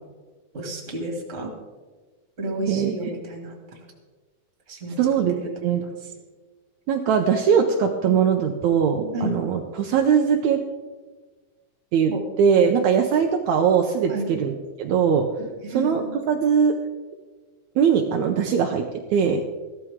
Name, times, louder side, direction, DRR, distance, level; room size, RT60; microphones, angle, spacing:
voice 1, 0.5-1.5 2.4-3.5 4.7-5.9 8.1-8.2 8.9-9.5 12.1-12.2 14.1-14.3 15.7-16.2, right 1 dB, 25° right, 1 dB, 2.1 m, -32 dB
voice 2, 2.7-3.1 5.0-5.8 6.9-10.6 11.9-12.1 12.4-14.5 14.8-15.2 15.7-16.7 17.8-18.9 19.1-19.4, right 7 dB, 80° right, 3 dB, 1.6 m, -21 dB
15.5 x 13.0 x 3.6 m, 1.3 s
omnidirectional pair, 4.3 m